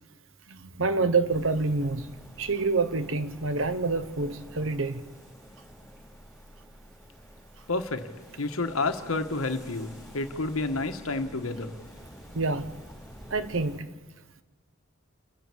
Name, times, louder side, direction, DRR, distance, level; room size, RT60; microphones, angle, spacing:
voice 1, 0.5-2.1 2.4-5.0 12.3-12.7 13.3-13.8, right 3 dB, 65° right, 1.2 m, -27 dB
sound 1, 1.3-13.8, equal, ahead, 5.5 m, -49 dB
voice 2, 7.7-8.0 8.4-11.8, left 3 dB, 90° left, 1.6 m, -30 dB
28.5 x 11.0 x 8.6 m
head